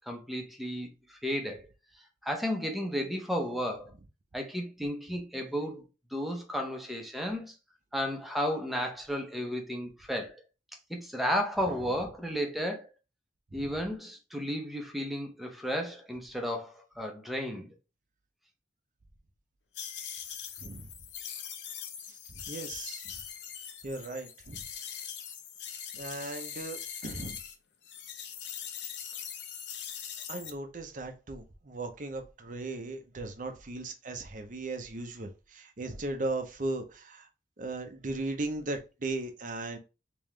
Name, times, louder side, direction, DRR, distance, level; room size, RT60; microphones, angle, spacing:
voice 1, 0.1-1.7 2.2-3.9 4.3-5.8 6.1-7.5 7.9-10.4 10.9-12.9 13.5-17.7, equal, ahead, 0.7 m, -33 dB
sound 1, 19.7-27.5 27.8-30.5, left 8 dB, 70° left, 0.6 m, -41 dB
voice 2, 22.1-23.0 23.8-24.6 25.9-27.4 30.3-37.3 37.6-39.8, right 2 dB, 45° right, 0.7 m, -37 dB
3.6 x 3.0 x 3.2 m
head